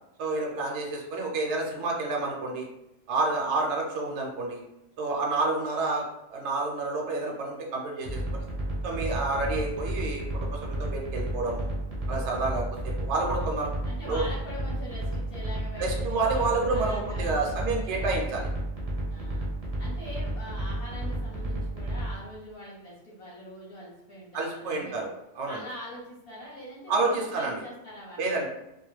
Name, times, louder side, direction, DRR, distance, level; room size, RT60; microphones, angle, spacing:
voice 1, 0.2-2.7 3.1-4.6 5.0-6.0 6.3-8.4 8.8-11.7 12.1-13.7 14.1-14.3 15.8-18.5 24.3-25.1 25.3-25.6 26.9-27.6 28.2-28.5, right 3 dB, 70° right, -1 dB, 0.8 m, -29 dB
sound 1, 8.1-22.2, right 1 dB, 40° right, 0.6 m, -32 dB
voice 2, 13.8-18.1 19.1-19.5 19.8-25.0 25.5-28.5, left 1 dB, 55° left, -5 dB, 0.9 m, -43 dB
2.3 x 2.1 x 3.0 m, 0.90 s
omnidirectional pair, 1.3 m